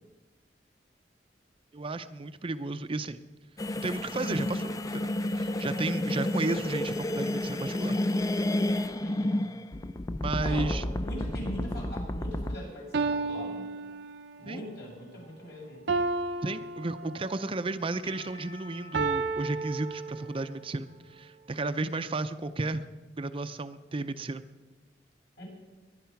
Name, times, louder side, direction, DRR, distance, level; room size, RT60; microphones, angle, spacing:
voice 1, 1.7-3.2 3.8-8.0 10.2-10.8 14.5-14.6 16.4-22.9 23.2-24.4, right 2 dB, 30° right, 10 dB, 0.5 m, -33 dB
sound 1, 3.6-12.6, left 1 dB, 20° left, 0.5 m, -30 dB
voice 2, 9.0-9.4 10.4-13.7 14.4-15.8 25.4-25.5, equal, 65° left, -3 dB, 7.4 m, -41 dB
sound 2, 12.2-12.3 12.9-14.5 15.9-17.5 18.9-20.6, right 3 dB, 85° right, 0.8 m, -32 dB
Percussion / Church bell, 18.0-22.0, left 3 dB, 40° left, 3.4 m, -52 dB
21.5 x 10.5 x 5.8 m, 1.2 s
head